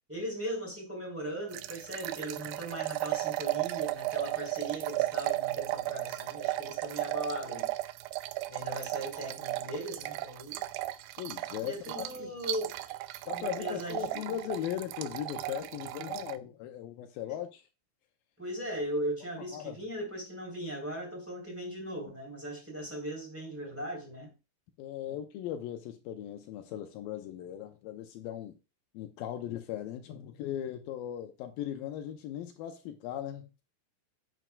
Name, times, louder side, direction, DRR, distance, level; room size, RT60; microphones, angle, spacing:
voice 1, 0.1-7.7 8.5-10.7 11.6-12.8 13.4-14.3 17.3-17.4 18.4-24.3 25.0-25.2, equal, 5° right, 3.2 m, -38 dB
sound 1, 1.5-16.4, right 17 dB, 80° right, 2.3 m, -35 dB
voice 2, 11.2-12.3 13.3-17.6 19.5-19.8 24.8-28.6 28.9-33.5, left 11 dB, 80° left, 2.4 m, -38 dB
9.1 x 7.8 x 2.3 m
omnidirectional pair, 4.2 m